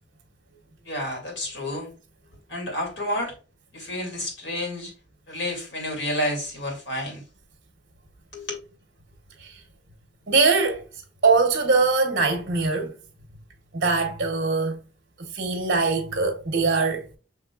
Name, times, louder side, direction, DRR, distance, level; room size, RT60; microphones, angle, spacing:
voice 1, 0.8-1.9 2.5-3.4 3.7-4.9 5.3-7.2 8.3-8.5, left 1 dB, 90° left, 2.4 m, -30 dB
voice 2, 10.3-10.8 11.2-12.9 13.7-14.8 15.2-17.0, right 4 dB, 50° right, 0.9 m, -22 dB
6.4 x 3.3 x 2.3 m
head